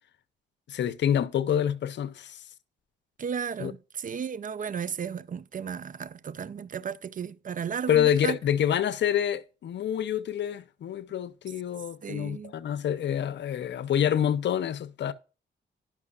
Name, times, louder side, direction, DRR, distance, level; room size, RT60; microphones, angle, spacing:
voice 1, 0.7-2.4 3.6-3.7 7.9-15.1, left 10 dB, 65° left, 0.6 m, -27 dB
voice 2, 3.2-8.4 12.0-12.5, right 7 dB, 45° right, 0.5 m, -34 dB
10.5 x 6.0 x 2.3 m
cardioid pair, 60°, 20 cm